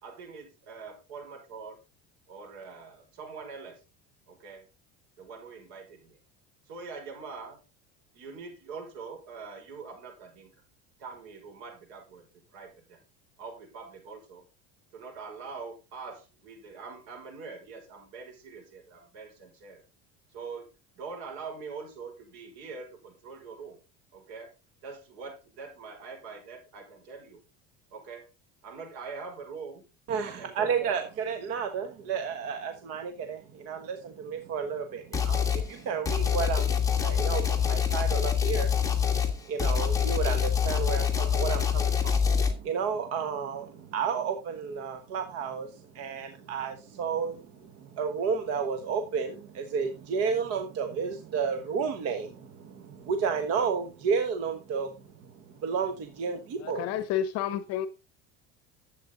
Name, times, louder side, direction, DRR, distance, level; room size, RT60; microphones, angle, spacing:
voice 1, 0.0-1.8 2.3-3.8 4.3-4.7 5.2-6.2 6.7-7.6 8.1-10.5 11.0-12.3 12.5-13.0 13.4-14.4 14.9-19.8 20.3-20.7 21.0-23.8 24.1-24.5 24.8-27.4 27.9-28.2 28.6-29.8 30.2-31.0, right 4 dB, 80° right, 5.8 m, -43 dB
voice 2, 30.1-38.8 39.2-54.9 55.6-56.9, right 6 dB, 50° right, 1.3 m, -32 dB
sound 1, 35.1-35.7 36.1-42.5, left 7 dB, 10° left, 1.7 m, -25 dB
voice 3, 56.6-57.9, left 10 dB, 55° left, 0.9 m, -30 dB
12.0 x 8.2 x 3.9 m
cardioid pair, 155°, 31 cm